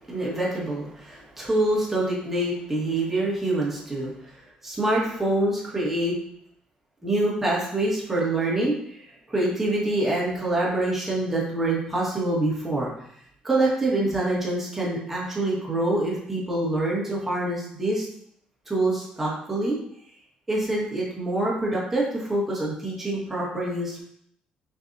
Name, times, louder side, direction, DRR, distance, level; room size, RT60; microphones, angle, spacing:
voice 1, 0.1-6.2 7.0-12.9 13.4-18.1 18.7-19.8 20.5-24.0, right 2 dB, 10° right, -5 dB, 1.5 m, -26 dB
6.0 x 2.7 x 2.7 m, 0.69 s
cardioid pair, 135°, 3 cm